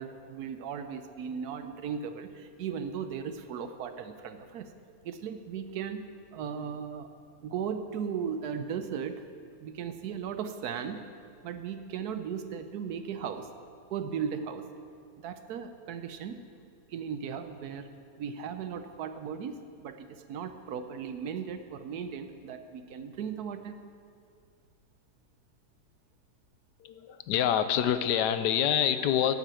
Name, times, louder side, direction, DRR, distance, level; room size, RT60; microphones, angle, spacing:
voice 1, 0.0-4.7 5.0-6.0 6.3-7.1 7.4-9.2 9.6-11.0 11.4-13.5 13.9-14.6 15.2-16.4 16.9-17.9 18.2-23.8, right 7 dB, 70° right, 9 dB, 1.2 m, -37 dB
voice 2, 26.8-29.4, left 10 dB, 85° left, 11 dB, 1.2 m, -26 dB
9.2 x 8.2 x 7.6 m, 2.3 s
omnidirectional pair, 1.8 m